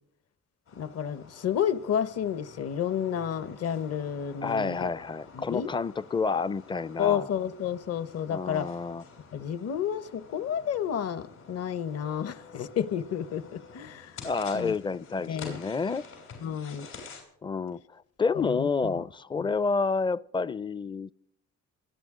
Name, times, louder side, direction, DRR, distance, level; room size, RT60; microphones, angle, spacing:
sound 1, 0.7-17.2, left 5 dB, 80° left, 6.6 m, -49 dB
voice 1, 0.8-4.9 5.4-5.7 7.0-8.7 9.3-14.2 14.5-14.7 15.3-15.6 16.4-16.9 18.3-18.7 18.9-19.0 19.4-19.5, left 9 dB, 55° left, 0.9 m, -31 dB
voice 2, 4.4-7.3 8.3-9.0 14.2-16.0 17.4-21.1, left 4 dB, 15° left, 0.4 m, -29 dB
27.5 x 9.7 x 3.7 m
cardioid pair, 90°, 30 cm